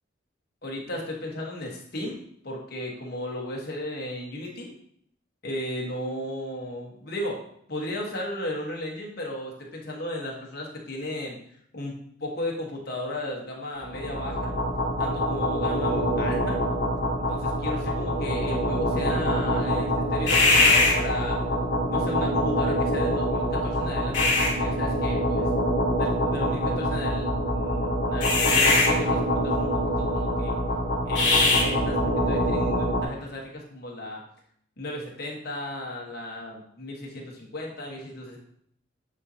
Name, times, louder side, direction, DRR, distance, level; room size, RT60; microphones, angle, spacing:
voice 1, 0.6-4.7 5.4-7.4 7.7-11.4 11.7-14.5 15.0-16.6 17.3-21.4 21.9-25.5 25.9-30.5 31.1-34.2 34.8-38.4, left 1 dB, 50° left, -1 dB, 1.3 m, -35 dB
sound 1, 13.8-33.0, left 1 dB, 70° left, 2.3 m, -24 dB
8.7 x 4.2 x 2.8 m, 0.68 s
head